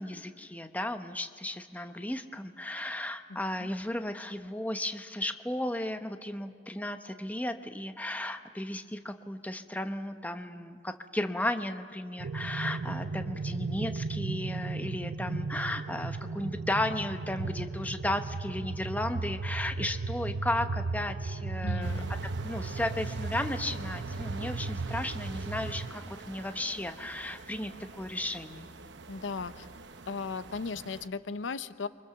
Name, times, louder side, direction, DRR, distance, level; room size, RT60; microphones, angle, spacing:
voice 1, 0.0-22.0 22.4-27.7 28.0-28.7, left 1 dB, 10° left, 7 dB, 0.9 m, -34 dB
voice 2, 3.3-3.7 21.6-22.1 29.1-29.7 30.1-31.9, left 4 dB, 80° left, 13 dB, 0.7 m, -37 dB
sound 1, 12.2-25.9, right 3 dB, 90° right, 0.7 m, -35 dB
sound 2, 21.8-31.1, right 4 dB, 70° right, 1.0 m, -46 dB
29.5 x 24.0 x 7.0 m, 2.2 s
head